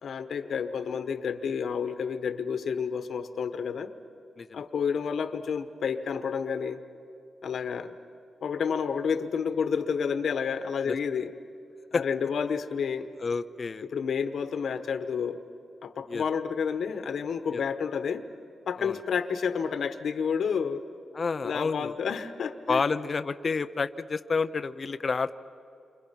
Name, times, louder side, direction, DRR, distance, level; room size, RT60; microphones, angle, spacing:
voice 1, 0.0-3.9 4.5-6.8 7.4-7.9 8.4-11.3 11.9-13.1 13.9-15.4 15.8-18.2 18.7-20.8 21.4-22.8, left 6 dB, 70° left, 9 dB, 1.3 m, -30 dB
voice 2, 13.2-13.9 16.1-16.2 17.5-17.6 18.8-19.0 21.1-22.0 22.7-25.3, left 4 dB, 35° left, 10 dB, 0.6 m, -29 dB
30.0 x 25.5 x 5.9 m, 2.6 s
wide cardioid pair, 140°, 0 cm